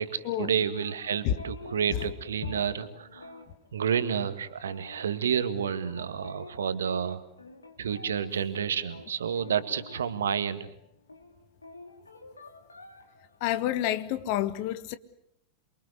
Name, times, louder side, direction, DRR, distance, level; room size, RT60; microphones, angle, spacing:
voice 1, 0.0-3.3 3.7-7.2 7.8-10.7, right 8 dB, 65° right, 1.9 m, -30 dB
sound 1, 0.6-10.8 11.1-13.8, left 3 dB, 80° left, 2.5 m, -48 dB
voice 2, 13.4-15.0, left 12 dB, 45° left, 1.5 m, -29 dB
28.5 x 23.5 x 8.1 m
figure-of-eight pair, 90°, 0 cm